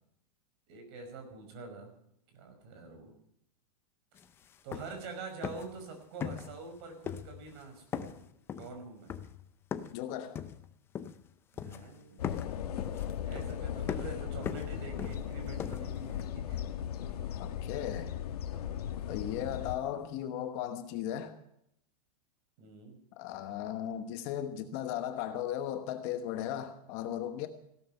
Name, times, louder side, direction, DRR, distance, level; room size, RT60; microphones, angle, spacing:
voice 1, 0.7-1.9 2.3-3.1 4.6-8.3 8.6-9.1 11.5-12.3 12.6-16.6 19.4-19.9 22.6-23.0, right 4 dB, 45° right, 5.4 m, -46 dB
sound 1, 4.2-4.3 4.5-5.1 5.4-5.8 6.2-6.8 7.1-7.6 7.9-10.0 10.3-11.3 11.6-12.0 12.2-16.3, left 8 dB, 10° left, 0.5 m, -40 dB
voice 2, 9.9-10.4 17.4-18.1 19.1-21.3 23.2-27.5, left 10 dB, 35° left, 1.1 m, -36 dB
sound 2, 12.2-19.8, left 10 dB, 80° left, 1.7 m, -37 dB
17.0 x 12.5 x 5.5 m
supercardioid pair, 170°, 19 cm